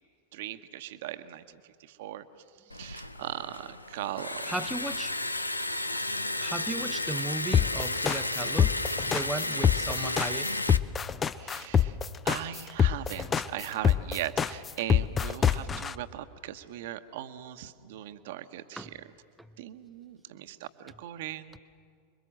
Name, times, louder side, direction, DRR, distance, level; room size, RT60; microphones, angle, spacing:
voice 1, 0.3-2.2 2.7-4.6 11.3-12.0 12.2-18.9 19.6-21.6, right 13 dB, 55° right, 10 dB, 1.1 m, -39 dB
Liquid, 2.7-10.8, left 2 dB, 85° left, 0.7 m, -33 dB
voice 2, 4.5-5.1 6.4-8.7 9.0-10.5 15.6-15.8 18.8-18.9 19.4-19.6, right 2 dB, 5° right, 12 dB, 0.8 m, -36 dB
sound 1, 7.5-15.9, left 8 dB, 20° left, 0.6 m, -24 dB
29.5 x 22.5 x 7.5 m, 2.2 s
figure-of-eight pair, 90°, 0 cm